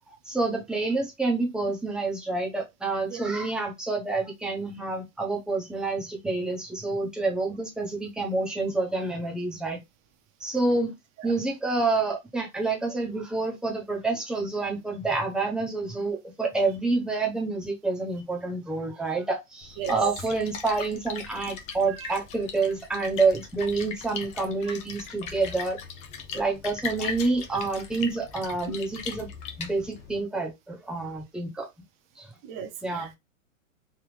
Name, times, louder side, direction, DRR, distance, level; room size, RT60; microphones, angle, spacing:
voice 1, 0.1-9.8 10.4-10.9 11.2-25.8 26.3-29.3 29.6-31.7 32.2-32.3 32.8-33.1, right 3 dB, ahead, 0.9 m, -28 dB
Splash splatter, 19.6-30.2, left 6 dB, 20° left, 0.5 m, -39 dB
voice 2, 19.8-20.1 22.0-22.1 28.7-28.8 32.4-33.2, right 10 dB, 30° right, 1.0 m, -34 dB
3.5 x 3.0 x 3.2 m
hypercardioid pair, 125°, 40 cm